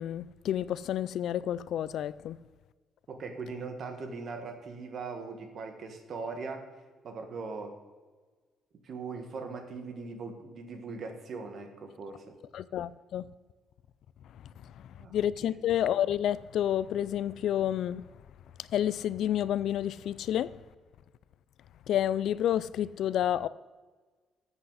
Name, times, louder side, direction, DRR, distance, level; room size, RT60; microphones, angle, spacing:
voice 1, 0.0-2.4 12.5-13.3 14.2-18.1 18.6-20.6 21.9-23.5, left 11 dB, 65° left, 0.3 m, -30 dB
voice 2, 3.1-6.6 7.0-7.7 8.8-12.2 15.0-15.5, right 4 dB, 45° right, 1.7 m, -40 dB
13.5 x 7.9 x 4.1 m
cardioid pair, 150°, 0 cm